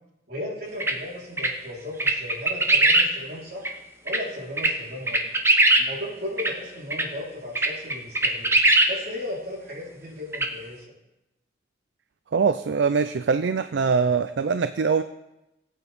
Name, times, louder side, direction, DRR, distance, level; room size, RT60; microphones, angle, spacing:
voice 1, 0.3-3.7 4.0-5.3 5.8-8.5 8.9-10.8, left 1 dB, 60° right, -6 dB, 3.9 m, -36 dB
sound 1, 0.8-0.9 1.4-1.5 2.0-3.1 3.6-3.7 4.1-4.2 4.6-4.7 5.1-5.8 6.4-6.5 6.9-7.0 7.5-8.9 10.3-10.5, right 2 dB, 15° right, 0.8 m, -19 dB
voice 2, 12.3-15.0, right 5 dB, 75° right, 11 dB, 0.4 m, -23 dB
18.0 x 8.5 x 3.5 m, 0.94 s
head